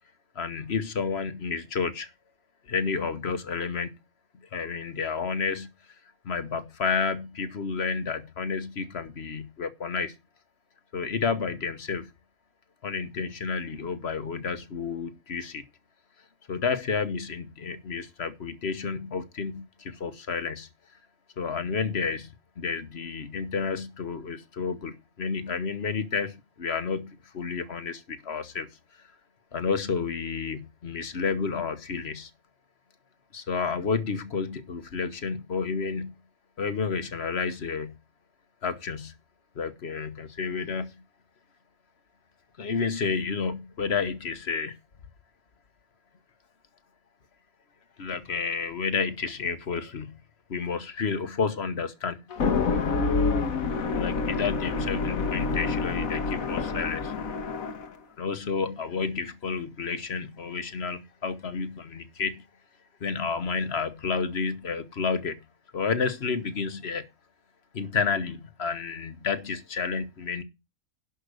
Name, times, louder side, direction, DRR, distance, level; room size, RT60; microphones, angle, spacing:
voice 1, 0.3-2.1 2.7-3.9 4.5-5.7 6.2-10.1 10.9-12.1 12.8-15.6 16.5-20.7 21.4-22.3 22.6-28.7 29.5-32.3 33.3-36.1 36.6-37.9 38.6-39.1 39.5-40.9 42.6-44.8 48.0-50.1 50.5-52.2 53.9-57.1 58.2-62.4 63.0-65.4 65.7-67.1 67.7-70.4, left 5 dB, 50° left, 1.3 m, -30 dB
sound 1, 52.3-57.9, left 4 dB, 75° left, 1.6 m, -27 dB
11.5 x 5.3 x 6.5 m
omnidirectional pair, 1.5 m